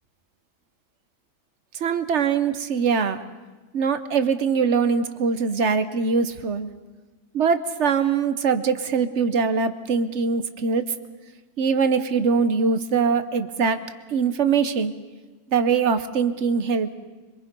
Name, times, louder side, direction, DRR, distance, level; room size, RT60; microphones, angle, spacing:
voice 1, 1.7-3.2 3.7-6.7 7.3-10.8 11.6-13.8 14.1-14.9 15.5-17.0, right 5 dB, 50° right, 11 dB, 1.2 m, -22 dB
25.0 x 23.5 x 5.3 m, 1.2 s
omnidirectional pair, 1.6 m